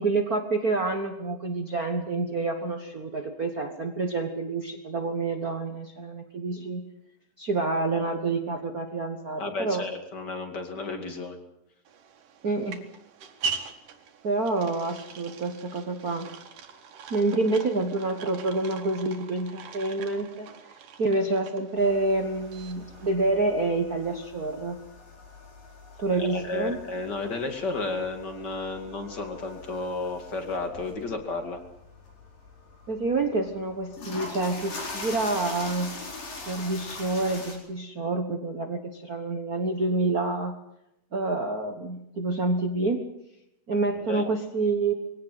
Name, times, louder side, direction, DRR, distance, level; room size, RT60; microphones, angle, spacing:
voice 1, 0.0-6.8 7.4-9.8 12.4-12.8 14.2-16.3 17.1-20.5 21.0-24.8 26.0-26.8 32.9-36.0 36.4-40.6 41.1-43.0 43.7-44.9, right 3 dB, 85° right, 4 dB, 0.8 m, -28 dB
voice 2, 9.4-11.4 26.2-31.6 44.1-44.2, left 3 dB, 30° left, 5 dB, 2.6 m, -32 dB
sound 1, 11.8-23.1, right 5 dB, 70° right, 3.3 m, -41 dB
sound 2, 21.8-37.5, left 3 dB, 70° left, 6.2 m, -43 dB
22.0 x 17.5 x 7.7 m, 0.82 s
omnidirectional pair, 4.0 m